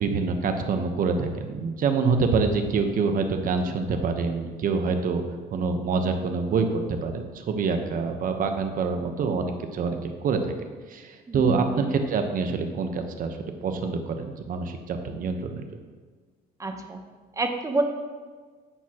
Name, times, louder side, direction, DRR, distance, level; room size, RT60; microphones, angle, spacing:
voice 1, 0.0-5.2 5.5-10.5 10.9-15.6, right 4 dB, 55° right, 6 dB, 1.1 m, -26 dB
voice 2, 11.3-11.7 16.6-17.0 17.4-17.8, right 2 dB, 20° right, 5 dB, 1.0 m, -28 dB
11.0 x 8.1 x 3.0 m, 1.5 s
cardioid pair, 110°, 17 cm